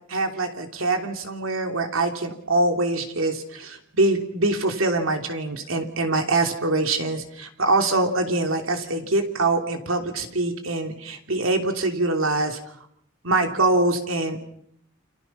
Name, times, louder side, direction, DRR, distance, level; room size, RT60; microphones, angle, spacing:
voice 1, 0.1-12.6 13.2-14.5, right 2 dB, 75° right, 5 dB, 3.2 m, -24 dB
29.5 x 26.0 x 5.9 m, 0.72 s
head